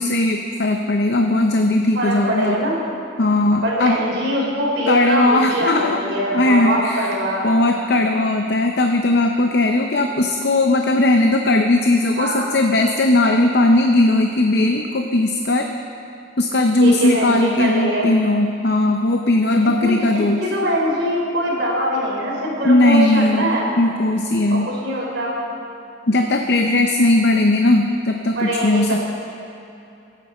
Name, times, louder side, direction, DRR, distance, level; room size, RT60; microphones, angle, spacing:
voice 1, 0.0-2.6 3.2-4.0 4.9-6.0 6.3-7.1 7.4-15.7 16.4-20.4 22.6-24.7 26.1-29.0, left 2 dB, 55° left, 4 dB, 0.7 m, -18 dB
voice 2, 1.9-2.8 3.6-7.5 12.2-12.5 16.8-18.1 19.6-19.9 20.4-23.7 24.5-25.4 28.4-29.0, equal, 65° right, -3 dB, 3.7 m, -23 dB
22.0 x 9.2 x 4.3 m, 2.7 s
head